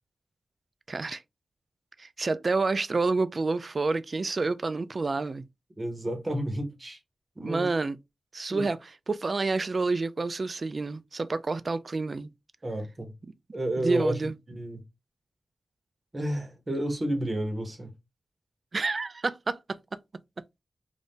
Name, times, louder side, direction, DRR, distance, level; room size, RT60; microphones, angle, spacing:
voice 1, 0.9-1.2 2.0-5.4 7.4-8.0 8.3-12.3 13.8-14.3 18.7-19.8, right 3 dB, 50° right, 0.3 m, -28 dB
voice 2, 5.8-7.0 7.4-7.7 8.5-8.6 12.6-13.1 13.5-14.8 16.1-17.9, right 1 dB, 35° right, 1.0 m, -31 dB
2.6 x 2.4 x 3.5 m
cardioid pair, 55°, 0 cm